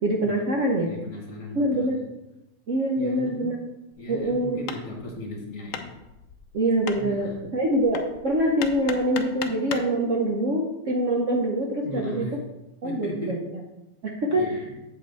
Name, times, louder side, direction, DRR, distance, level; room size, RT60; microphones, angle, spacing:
voice 1, 0.0-0.9 1.5-2.0 2.7-3.6 4.1-4.6 6.5-12.3 12.8-13.4 14.0-14.5, right 1 dB, 55° right, -1 dB, 0.9 m, -24 dB
voice 2, 0.9-2.1 3.0-3.5 4.0-5.9 7.0-7.5 11.8-12.4 12.8-13.3 14.3-14.8, left 1 dB, 50° left, 0 dB, 1.4 m, -37 dB
Hammer, 3.9-10.0, left 7 dB, 90° left, 0.7 m, -38 dB
7.8 x 5.1 x 4.0 m, 0.98 s
omnidirectional pair, 2.0 m